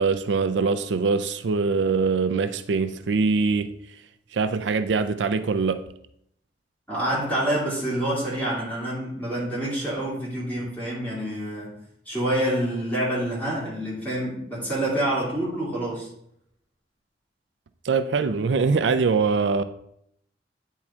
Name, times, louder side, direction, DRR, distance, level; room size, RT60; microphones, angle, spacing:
voice 1, 0.0-3.7 4.3-5.8 17.8-19.6, right 4 dB, 80° right, 10 dB, 0.4 m, -23 dB
voice 2, 6.9-11.8 12.1-16.1, right 1 dB, 10° left, -7 dB, 2.7 m, -27 dB
8.5 x 3.7 x 4.3 m, 0.71 s
head